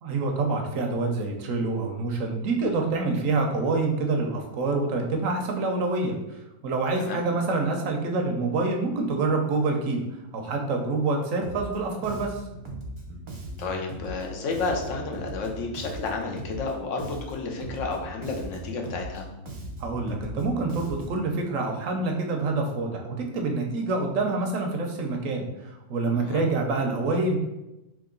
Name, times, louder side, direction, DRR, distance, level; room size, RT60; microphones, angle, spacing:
voice 1, 0.0-10.0 10.3-12.4 19.8-27.4, right 3 dB, 85° right, 2 dB, 1.1 m, -27 dB
Bass guitar, 11.4-11.8 12.0-16.7 17.0-21.3, right 1 dB, 40° right, 0.4 m, -39 dB
voice 2, 13.6-19.3 26.2-26.4, left 3 dB, 75° left, 2 dB, 1.0 m, -31 dB
3.6 x 3.0 x 3.8 m, 0.95 s
omnidirectional pair, 1.3 m